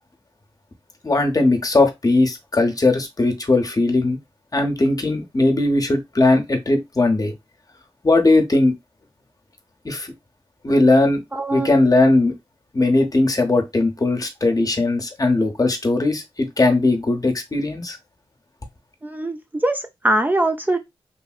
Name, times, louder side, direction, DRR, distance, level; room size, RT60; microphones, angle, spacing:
voice 1, 1.0-4.2 4.5-7.3 8.0-8.7 9.8-10.1 10.6-11.2 11.5-12.3 12.7-18.0, left 2 dB, 35° left, 0.8 m, -18 dB
voice 2, 11.3-11.7 19.0-20.8, right 1 dB, 20° right, 0.4 m, -22 dB
3.0 x 2.7 x 2.3 m
cardioid pair, 50°, 10 cm